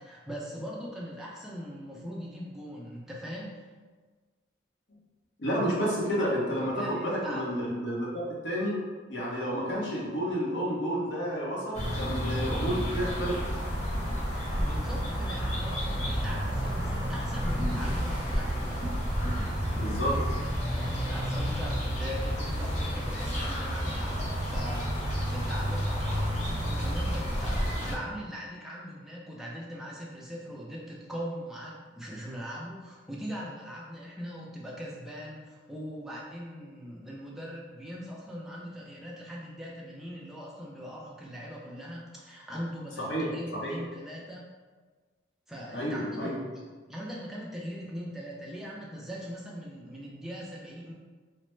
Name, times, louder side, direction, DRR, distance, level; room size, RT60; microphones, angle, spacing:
voice 1, 0.0-3.6 6.7-7.4 14.3-18.6 20.7-44.4 45.5-46.4 46.9-50.9, equal, ahead, -5 dB, 0.4 m, -41 dB
voice 2, 5.4-8.8 9.1-13.4 19.7-20.2 43.1-43.3 43.6-43.7 45.7-46.4, equal, 70° left, -5 dB, 0.8 m, -30 dB
sound 1, 11.7-27.9, equal, 35° left, 0.7 m, -30 dB
3.2 x 2.0 x 3.1 m, 1.4 s
head